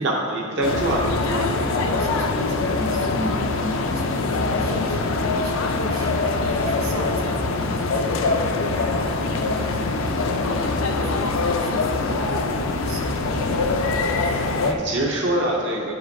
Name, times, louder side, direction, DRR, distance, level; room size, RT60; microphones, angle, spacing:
voice 1, 0.0-1.3 1.5-1.6 14.3-15.9, right 1 dB, 55° right, -2 dB, 0.6 m, -25 dB
sound 1, 0.6-14.7, left 3 dB, 70° left, 0.5 m, -23 dB
voice 2, 1.2-13.6, equal, 85° right, 0 dB, 1.0 m, -35 dB
9.8 x 4.8 x 2.6 m, 2.3 s
head